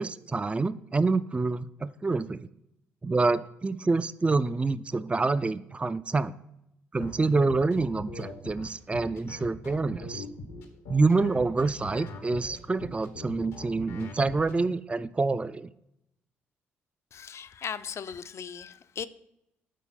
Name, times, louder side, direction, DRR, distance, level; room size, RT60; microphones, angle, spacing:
voice 1, 0.0-2.5 3.0-6.3 6.9-10.2 10.9-15.7, right 3 dB, 20° right, 0.4 m, -27 dB
sound 1, 7.0-14.5, left 2 dB, 85° left, 1.2 m, -41 dB
voice 2, 17.1-19.1, left 7 dB, 55° left, 0.5 m, -38 dB
8.2 x 4.2 x 5.9 m
hypercardioid pair, 50°, 6 cm